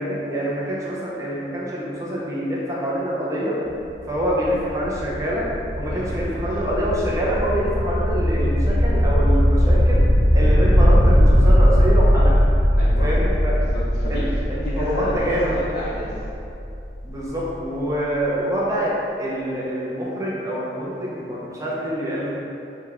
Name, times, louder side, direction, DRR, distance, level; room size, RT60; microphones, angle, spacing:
voice 1, 0.0-3.6 4.1-5.4 5.8-10.0 10.3-12.4 13.0-13.6 14.1-15.5 17.0-18.9 19.2-22.4, equal, 20° right, -6 dB, 0.5 m, -26 dB
sound 1, 3.7-17.4, equal, 70° right, 1.4 m, -19 dB
voice 2, 5.9-6.2 12.8-13.1 13.5-16.1, left 1 dB, 60° left, -10 dB, 0.6 m, -30 dB
5.0 x 2.2 x 3.5 m, 2.7 s
head